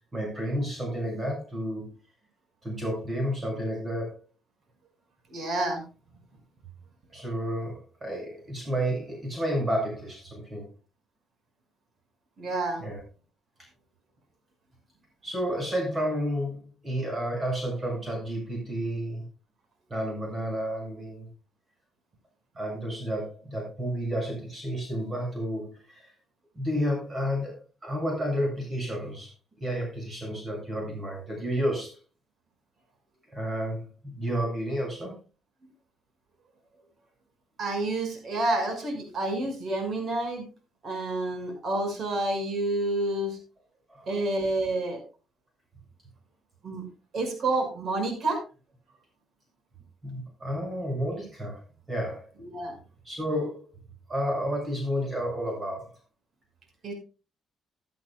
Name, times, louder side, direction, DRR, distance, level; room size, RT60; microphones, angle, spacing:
voice 1, 0.1-1.9 2.6-4.2 7.1-10.7 12.8-13.0 15.2-19.2 19.9-21.3 22.6-26.1 26.6-27.5 27.8-29.3 29.6-32.0 33.3-35.1 43.9-44.1 50.0-51.6 51.9-52.2 53.0-53.6 54.1-55.9, equal, 30° right, 0 dB, 7.5 m, -31 dB
voice 2, 5.3-5.8 12.4-12.8 37.6-40.5 40.8-43.4 44.1-45.0 46.6-46.8 47.1-48.4 52.4-52.8 56.8-56.9, right 2 dB, 55° right, 5 dB, 6.0 m, -29 dB
16.5 x 11.0 x 2.3 m, 0.33 s
cardioid pair, 90°, 0 cm